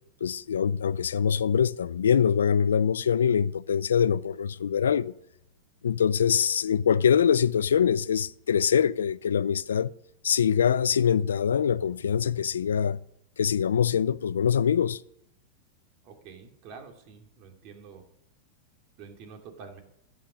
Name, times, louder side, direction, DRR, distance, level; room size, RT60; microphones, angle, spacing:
voice 1, 0.2-5.1 5.8-9.9 10.2-13.0 13.4-15.0, left 7 dB, 85° left, 0.4 m, -24 dB
voice 2, 16.0-18.0 19.0-19.8, right 5 dB, 50° right, 2.8 m, -47 dB
12.0 x 9.2 x 6.3 m
hypercardioid pair, 110°, 0 cm